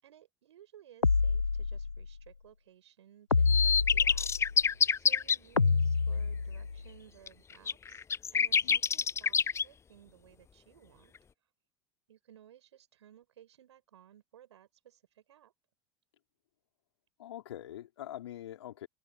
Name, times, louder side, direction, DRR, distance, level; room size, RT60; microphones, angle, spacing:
voice 1, 0.0-8.1 8.3-11.1 12.1-15.5, right 11 dB, 70° right, 7.2 m, -59 dB
sound 1, 1.0-2.1 3.3-4.6 5.6-6.8, left 4 dB, 90° left, 0.5 m, -28 dB
sound 2, 3.5-5.4 7.3-7.4 7.7-9.6, left 6 dB, 20° left, 0.4 m, -26 dB
voice 2, 17.2-18.9, left 12 dB, 70° left, 4.6 m, -44 dB
figure-of-eight pair, 70°, 15 cm